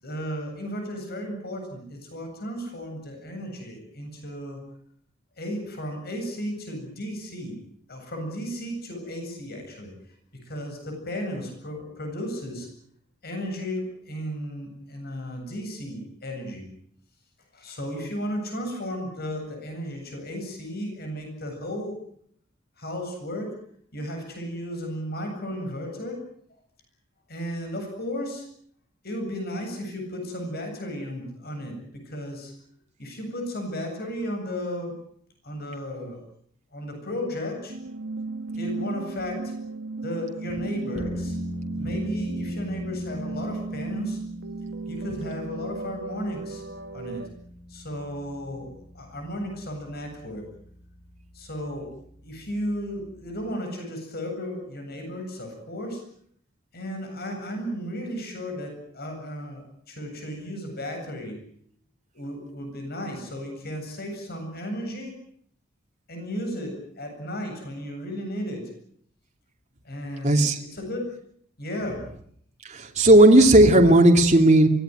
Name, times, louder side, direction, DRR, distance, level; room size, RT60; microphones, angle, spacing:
voice 1, 0.0-4.6 5.4-7.6 7.9-9.9 10.4-12.7 13.2-16.7 17.5-22.0 22.8-23.6 23.9-26.2 27.3-28.5 29.0-32.5 33.0-35.0 35.4-36.2 36.7-37.8 38.6-39.5 40.0-41.4 41.8-44.2 44.9-46.6 46.9-47.3 47.7-50.5 51.3-51.9 52.2-56.0 56.7-61.4 62.1-65.2 66.1-68.7 69.8-71.1 71.6-72.1, equal, 50° left, 4 dB, 8.0 m, -34 dB
sound 1, 37.7-47.3, right 3 dB, 65° right, 1.6 m, -35 dB
sound 2, 40.9-53.5, equal, 15° left, 7.5 m, -39 dB
voice 2, 70.2-70.6 72.6-74.7, right 1 dB, 35° right, 1 dB, 2.8 m, -15 dB
24.0 x 18.0 x 9.3 m, 0.64 s
head